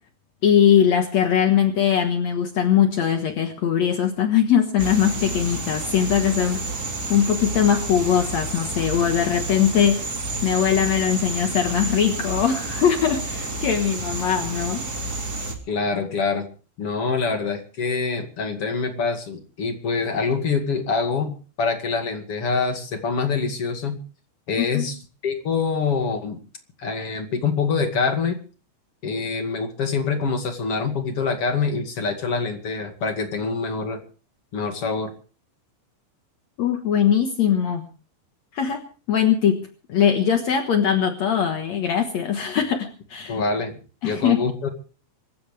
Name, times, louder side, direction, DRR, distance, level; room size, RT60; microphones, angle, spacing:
voice 1, 0.4-6.6 7.1-10.0 10.4-14.8 24.6-24.9 36.6-37.8 38.5-38.8 39.1-39.6 39.9-43.4 44.0-44.4, left 8 dB, 70° left, 5 dB, 1.6 m, -21 dB
sound 1, 4.8-15.5, right 2 dB, 25° right, 2.4 m, -30 dB
voice 2, 15.7-16.4 16.8-24.0 24.5-25.0 25.2-26.4 26.8-28.4 29.0-34.0 34.5-35.1 43.3-43.8 44.0-44.7, left 4 dB, 40° left, 5 dB, 2.3 m, -25 dB
25.5 x 14.5 x 3.4 m, 0.38 s
omnidirectional pair, 5.3 m